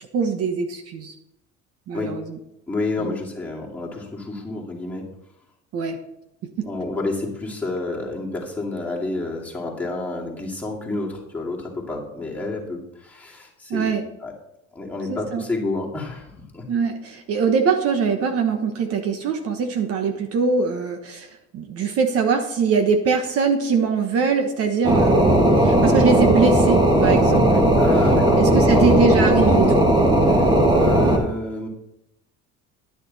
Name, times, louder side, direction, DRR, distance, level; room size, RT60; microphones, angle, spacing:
voice 1, 0.1-1.1 1.9-2.4 3.0-3.2 5.7-6.0 6.6-6.7 13.7-14.0 15.1-15.4 16.7-27.6 28.4-29.9, right 5 dB, 50° right, 6 dB, 1.2 m, -22 dB
voice 2, 2.7-5.1 6.6-14.3 14.7-16.7 27.8-29.0 30.2-31.7, left 2 dB, 5° left, -4 dB, 2.5 m, -29 dB
sound 1, 24.8-31.2, right 1 dB, 15° right, 1.7 m, -16 dB
10.5 x 9.8 x 4.1 m, 0.84 s
cardioid pair, 150°, 30 cm